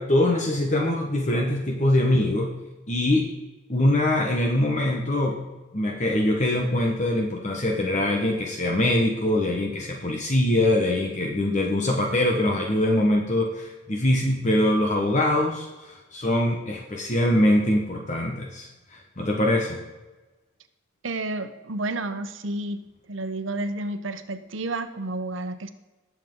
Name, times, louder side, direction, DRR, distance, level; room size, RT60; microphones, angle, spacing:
voice 1, 0.0-2.5 2.9-3.3 3.7-5.4 5.7-19.8, left 1 dB, 35° left, 1 dB, 1.2 m, -23 dB
voice 2, 21.0-22.8 23.1-25.7, right 2 dB, 75° right, 9 dB, 0.9 m, -30 dB
19.5 x 7.6 x 3.8 m, 1.2 s
head